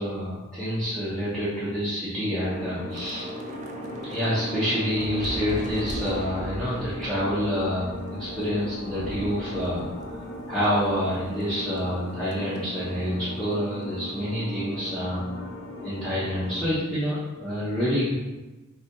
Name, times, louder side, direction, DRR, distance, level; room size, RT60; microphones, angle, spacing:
voice 1, 0.0-3.3 4.0-15.5 15.8-18.1, equal, 5° left, -11 dB, 0.7 m, -28 dB
sound 1, 2.4-16.7, left 1 dB, 45° left, 0.6 m, -37 dB
Thunder / Rain, 2.9-11.5 11.8-12.0 12.3-12.6, right 1 dB, 35° right, 0.4 m, -39 dB
3.8 x 2.7 x 2.6 m, 1.1 s
head